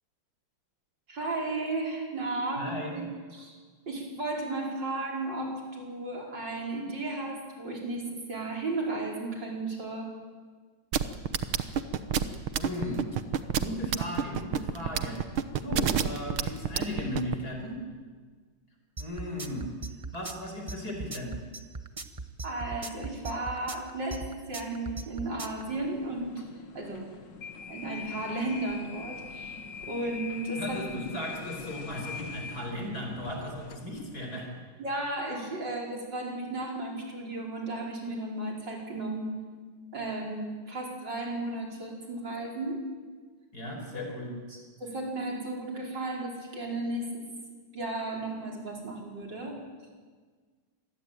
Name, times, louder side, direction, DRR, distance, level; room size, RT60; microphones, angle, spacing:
voice 1, 1.1-3.6 3.9-10.1 22.4-26.4 26.7-27.1 27.7-29.6 29.8-31.0 34.8-39.3 39.9-42.8 43.9-47.2 47.7-49.5, right 2 dB, 55° right, -1 dB, 5.7 m, -34 dB
voice 2, 2.6-3.0 12.5-13.2 13.6-15.2 15.6-17.8 19.0-19.7 20.1-21.3 30.6-34.5 43.5-44.3, left 1 dB, 45° left, 2 dB, 5.4 m, -36 dB
sound 1, 10.9-17.4, right 9 dB, 80° right, 1.9 m, -27 dB
sound 2, 19.0-25.6, right 3 dB, 25° right, 0.9 m, -38 dB
sound 3, 25.6-34.1, left 5 dB, 60° left, 2.0 m, -43 dB
26.0 x 20.5 x 9.1 m, 1.5 s
omnidirectional pair, 2.2 m